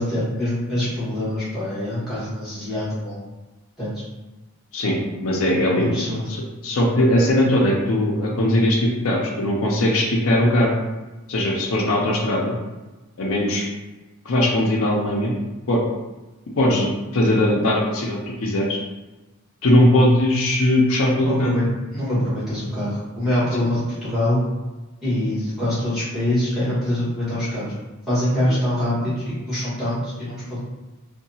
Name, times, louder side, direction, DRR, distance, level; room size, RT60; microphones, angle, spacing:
voice 1, 0.0-3.2 3.8-3.9 5.8-6.3 21.2-21.6 21.9-24.4 25.0-27.7 28.1-30.6, left 1 dB, ahead, -11 dB, 1.3 m, -24 dB
voice 2, 4.7-5.9 6.3-10.7 11.3-12.6 13.2-13.6 14.3-15.3 15.7-15.8 16.6-16.9 17.1-18.8 19.6-21.5, left 1 dB, 65° left, -2 dB, 0.5 m, -19 dB
2.7 x 2.2 x 2.7 m, 1.1 s
head